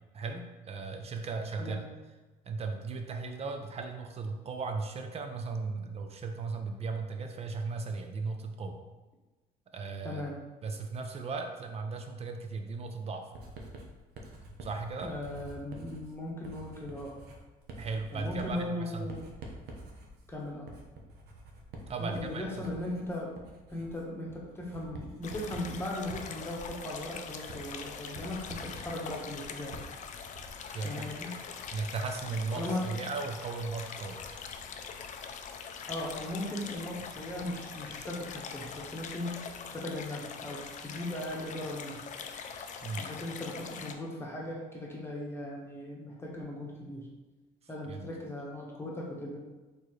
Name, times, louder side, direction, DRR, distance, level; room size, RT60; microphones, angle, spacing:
voice 1, 0.1-1.8 2.5-8.8 9.7-10.2 10.6-13.2 14.6-15.1 17.8-19.1 21.9-22.6 30.7-31.1 31.7-34.2 42.8-43.1 47.8-48.1, right 4 dB, 35° right, 5 dB, 0.6 m, -36 dB
voice 2, 10.0-10.4 15.0-17.2 18.1-19.2 20.3-20.7 22.0-23.4 23.7-29.8 30.8-31.4 32.6-32.9 35.9-39.4 39.7-42.0 43.0-47.1 47.7-49.4, left 1 dB, 15° left, -3 dB, 1.1 m, -38 dB
Writing, 13.3-30.7, right 2 dB, 70° right, 0.8 m, -48 dB
sound 1, 25.2-43.9, left 6 dB, 45° left, 0.4 m, -43 dB
4.2 x 3.3 x 3.2 m, 1.2 s
cardioid pair, 110°, 17 cm